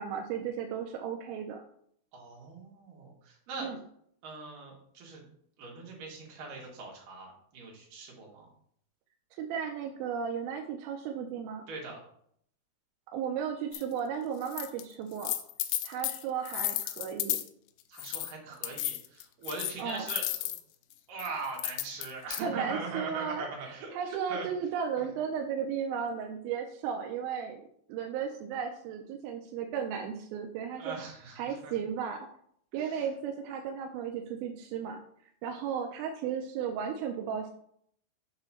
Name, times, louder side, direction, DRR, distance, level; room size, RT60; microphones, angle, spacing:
voice 1, 0.0-1.6 3.6-3.8 9.4-11.6 13.1-15.3 15.8-17.4 19.8-20.1 22.4-27.6 27.9-31.0 31.4-32.3 32.7-35.0 35.4-37.5, right 7 dB, 80° right, 4 dB, 2.2 m, -35 dB
voice 2, 2.1-3.7 4.2-5.2 5.6-8.5 11.7-12.0 17.9-20.2 21.1-24.5 25.0-25.1 30.8-31.7 32.8-33.1, right 3 dB, 65° right, -2 dB, 3.0 m, -41 dB
sound 1, 13.7-13.8 14.4-14.8 15.1-17.5 18.0-18.3 18.6-20.6 21.2-22.4, left 14 dB, 85° left, 2.4 m, -33 dB
7.0 x 2.9 x 5.5 m, 0.66 s
omnidirectional pair, 4.5 m